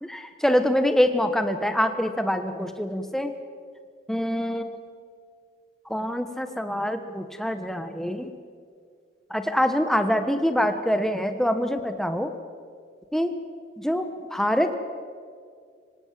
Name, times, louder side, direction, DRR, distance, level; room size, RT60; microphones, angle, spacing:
voice 1, 0.0-3.3 4.1-4.8 5.9-8.3 9.3-12.3 13.1-13.3 13.8-14.7, equal, ahead, 8 dB, 1.2 m, -25 dB
25.5 x 17.0 x 7.6 m, 2.1 s
head